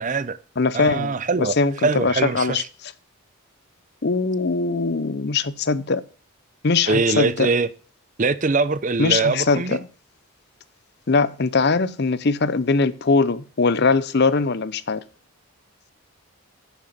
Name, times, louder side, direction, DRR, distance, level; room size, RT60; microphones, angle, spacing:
voice 1, 0.0-0.4 0.7-1.6 1.8-2.6 6.9-7.7 8.2-9.8, right 4 dB, 35° right, 0.5 m, -22 dB
voice 2, 0.6-2.9 4.0-6.0 6.6-7.5 9.0-9.8 11.1-15.0, left 4 dB, 50° left, 0.6 m, -21 dB
10.5 x 7.3 x 5.7 m
head